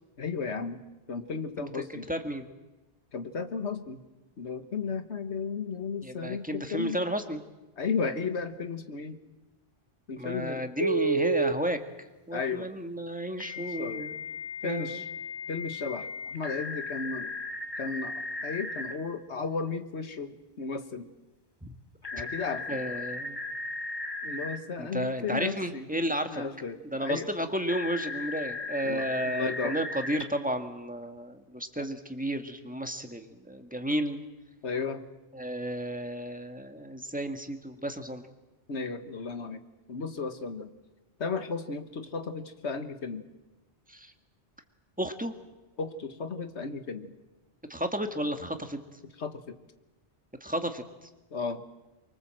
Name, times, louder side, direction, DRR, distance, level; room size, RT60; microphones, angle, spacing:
voice 1, 0.2-0.8 1.1-2.1 3.1-4.0 4.4-7.0 7.8-9.2 10.1-10.7 12.3-12.7 13.5-14.1 14.6-15.0 15.5-17.3 17.8-21.1 22.1-23.0 24.2-25.9 26.3-27.3 28.8-29.8 31.8-31.9 34.6-35.0 38.7-39.6 39.9-40.7 41.2-43.2 45.8-47.1 49.2-49.6 51.3-51.6, left 5 dB, 75° left, 9 dB, 1.7 m, -34 dB
voice 2, 2.1-2.4 6.0-7.4 10.2-11.8 12.3-14.2 14.6-15.0 21.6-21.7 22.2-22.3 22.7-23.4 24.8-26.4 26.9-34.2 35.3-38.2 43.9-44.1 45.0-45.3 47.7-49.0 50.4-51.1, right 1 dB, 5° right, 6 dB, 1.6 m, -32 dB
Telephone, 10.8-11.5 13.4-18.9 22.0-24.6 27.7-30.2, equal, 20° left, 2.6 m, -34 dB
24.5 x 23.5 x 7.7 m, 1.1 s
omnidirectional pair, 1.1 m